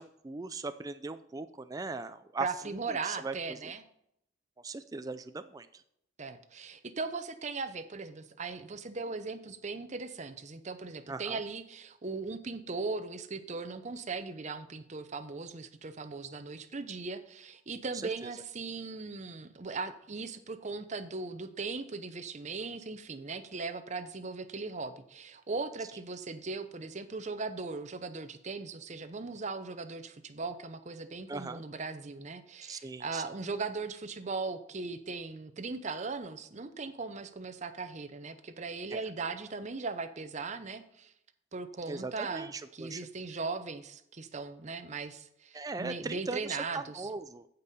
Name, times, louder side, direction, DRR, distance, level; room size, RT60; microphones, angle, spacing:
voice 1, 0.0-2.5 2.9-3.7 4.6-5.8 11.1-11.4 17.9-18.3 31.3-31.6 32.6-33.2 38.9-39.0 41.9-43.0 45.5-47.5, right 3 dB, 20° right, 10 dB, 0.3 m, -39 dB
voice 2, 2.4-3.9 6.2-41.1 41.5-47.1, right 4 dB, 35° right, 11 dB, 0.7 m, -38 dB
15.0 x 5.4 x 4.2 m, 0.77 s
head